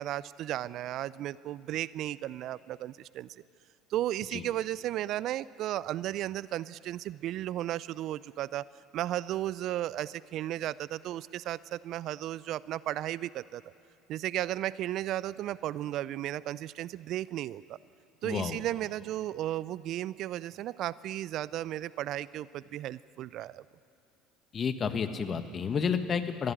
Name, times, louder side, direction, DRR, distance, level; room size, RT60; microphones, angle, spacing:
voice 1, 0.0-3.4 3.9-8.6 8.9-13.6 14.1-17.8 18.2-23.6, right 13 dB, 55° right, 20 dB, 0.4 m, -34 dB
voice 2, 18.2-18.6 24.5-26.5, left 6 dB, 35° left, 8 dB, 1.7 m, -30 dB
21.0 x 15.5 x 10.0 m, 2.4 s
hypercardioid pair, 70°, 0 cm